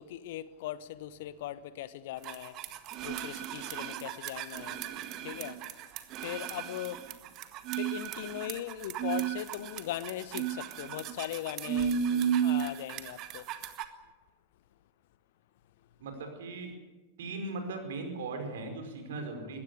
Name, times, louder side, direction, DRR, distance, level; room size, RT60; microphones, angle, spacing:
voice 1, 0.0-2.6 3.0-4.8 5.2-5.6 6.2-7.0 7.7-13.5, left 13 dB, 55° left, 1.0 m, -39 dB
sound 1, 2.2-13.9, right 9 dB, 40° right, 1.7 m, -34 dB
voice 2, 16.0-16.7 17.2-19.6, right 3 dB, 60° right, 5.0 m, -38 dB
21.0 x 17.0 x 9.7 m
figure-of-eight pair, 90°, 0 cm